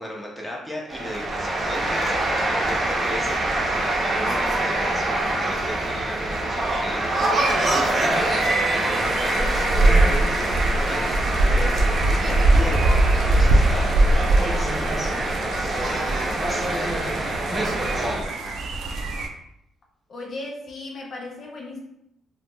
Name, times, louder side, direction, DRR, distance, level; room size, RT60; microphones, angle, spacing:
voice 1, 0.0-14.0 14.4-17.2 17.5-19.2, equal, 5° left, -3 dB, 0.8 m, -36 dB
sound 1, 0.9-18.2, right 2 dB, 35° right, 0.7 m, -24 dB
sound 2, 8.9-19.3, right 2 dB, 70° right, 0.3 m, -22 dB
voice 2, 20.1-21.8, left 2 dB, 50° left, 0 dB, 0.5 m, -36 dB
2.4 x 2.0 x 3.3 m, 0.79 s
cardioid pair, 90°, 0 cm